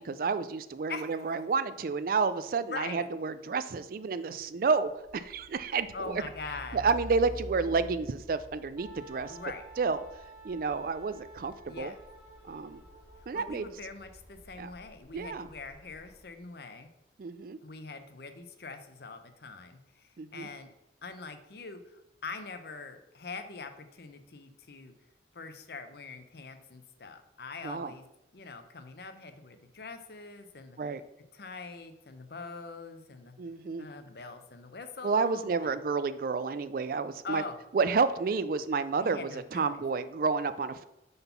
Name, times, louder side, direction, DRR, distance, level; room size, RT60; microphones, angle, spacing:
voice 1, 0.0-6.2 6.7-9.4 9.8-10.0 10.4-11.9 12.4-12.8 13.3-13.7 14.6-14.7 15.1-15.5 17.2-17.6 20.2-20.5 27.6-27.9 30.8-31.0 33.4-33.9 35.0-37.4 37.7-40.8, right 4 dB, 50° right, 13 dB, 0.3 m, -30 dB
voice 2, 0.9-1.4 2.6-3.0 5.9-6.8 9.3-9.6 11.7-11.9 13.3-16.9 17.6-20.7 21.0-24.9 25.3-28.0 28.3-30.8 31.3-33.4 33.8-35.8 37.2-37.6 39.0-39.8, left 4 dB, 60° left, 7 dB, 0.7 m, -43 dB
Truck, 5.0-16.3, right 1 dB, 15° left, 1.6 m, -49 dB
Wind instrument woodwind instrument, 8.8-13.4, right 3 dB, 20° right, 1.9 m, -52 dB
5.3 x 4.0 x 5.7 m, 0.94 s
head